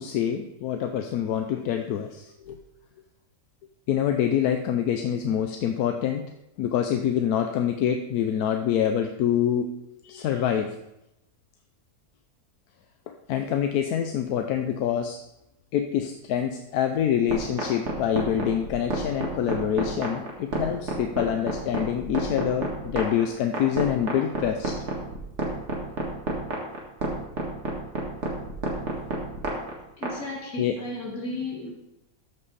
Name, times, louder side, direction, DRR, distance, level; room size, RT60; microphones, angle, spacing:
voice 1, 0.0-2.6 3.9-6.2 6.6-9.8 10.0-10.7 13.1-15.2 15.7-24.7 30.6-30.8, left 9 dB, 90° left, 5 dB, 1.2 m, -26 dB
sound 1, 17.3-30.1, right 2 dB, 50° right, 2.1 m, -29 dB
voice 2, 30.0-31.7, left 1 dB, 70° left, -2 dB, 2.7 m, -34 dB
13.5 x 5.5 x 4.1 m, 0.86 s
omnidirectional pair, 1.6 m